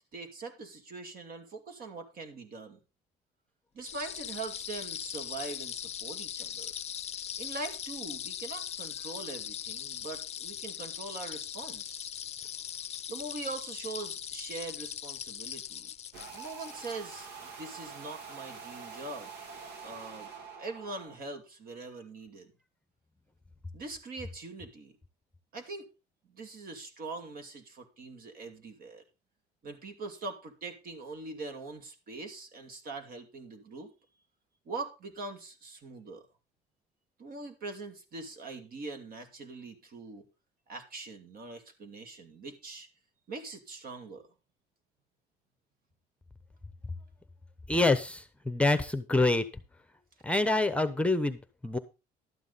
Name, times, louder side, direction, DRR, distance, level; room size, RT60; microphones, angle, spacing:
voice 1, 0.1-2.8 3.7-6.7 7.4-12.1 13.1-15.9 16.3-19.3 19.8-20.3 20.6-22.5 23.7-24.9 25.5-25.8 26.3-29.0 29.6-33.9 34.7-36.3 37.2-40.2 40.7-42.9 43.3-44.3, right 3 dB, 60° right, 6 dB, 2.6 m, -42 dB
sound 1, 3.8-17.3, left 9 dB, 40° left, 0.5 m, -40 dB
sound 2, 16.1-21.2, right 5 dB, 85° right, 2.0 m, -46 dB
voice 2, 47.7-49.4 50.2-51.8, left 2 dB, 5° left, 12 dB, 0.9 m, -26 dB
12.0 x 9.1 x 4.0 m, 0.29 s
cardioid pair, 110°, 17 cm